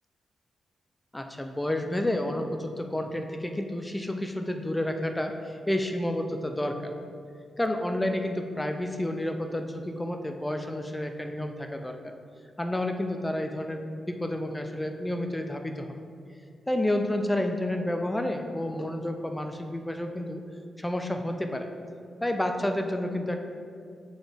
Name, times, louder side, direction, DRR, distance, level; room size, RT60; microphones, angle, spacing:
voice 1, 1.1-6.9 7.6-12.1 12.6-16.0 16.7-20.4 20.8-21.7 22.2-23.4, left 1 dB, 10° left, 5 dB, 0.3 m, -30 dB
7.1 x 3.9 x 3.4 m, 2.3 s
wide cardioid pair, 145°, 0 cm